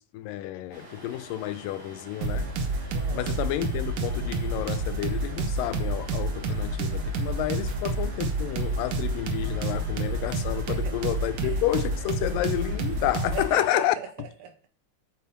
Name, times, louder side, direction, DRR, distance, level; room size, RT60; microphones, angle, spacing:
voice 1, 0.0-2.5 3.1-14.0, left 14 dB, 85° left, 2.2 m, -30 dB
sound 1, 0.7-13.8, right 1 dB, 35° right, 2.4 m, -47 dB
sound 2, 2.2-13.5, right 2 dB, 80° right, 1.2 m, -29 dB
voice 2, 2.9-3.4 10.7-10.9 11.4-11.6 13.3-14.7, right 8 dB, 65° right, 1.8 m, -39 dB
8.5 x 7.2 x 2.9 m
omnidirectional pair, 3.9 m